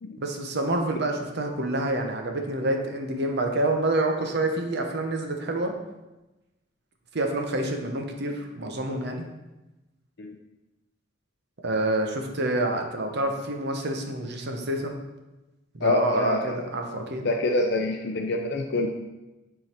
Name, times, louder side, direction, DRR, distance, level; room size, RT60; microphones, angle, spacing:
voice 1, 0.2-5.7 7.1-9.2 11.6-15.0 15.7-17.3, right 2 dB, 55° right, 3 dB, 0.9 m, -27 dB
voice 2, 15.8-16.7 17.2-18.9, left 2 dB, 60° left, 4 dB, 0.5 m, -26 dB
9.4 x 3.9 x 4.4 m, 1.0 s
head